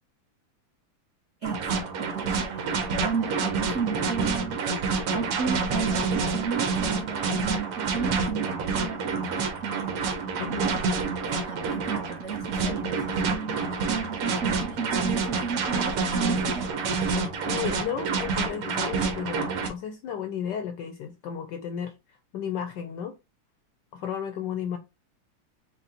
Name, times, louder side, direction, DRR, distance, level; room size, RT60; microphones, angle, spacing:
voice 1, 1.4-2.6 2.9-4.6 5.1-16.9, right 6 dB, 55° right, 0.8 m, -34 dB
sound 1, 1.4-19.7, right 4 dB, 90° right, 2.0 m, -28 dB
voice 2, 10.4-10.8 17.4-23.2 23.9-24.8, left 8 dB, 75° left, 1.0 m, -34 dB
5.2 x 2.1 x 4.2 m
omnidirectional pair, 2.4 m